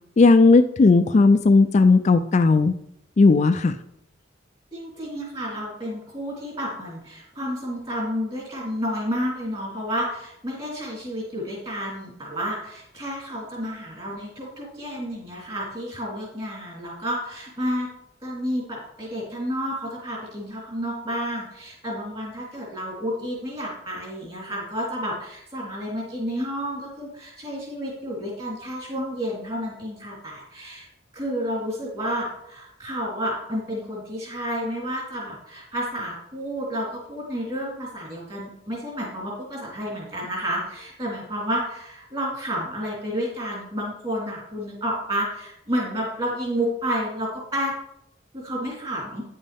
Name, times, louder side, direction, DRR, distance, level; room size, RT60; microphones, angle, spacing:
voice 1, 0.2-2.7 3.2-3.8, left 3 dB, 40° left, 9 dB, 0.4 m, -16 dB
voice 2, 4.7-17.9 18.2-30.9 31.1-47.7 48.3-49.2, equal, 30° right, -5 dB, 3.6 m, -30 dB
9.9 x 7.5 x 3.5 m, 0.77 s
head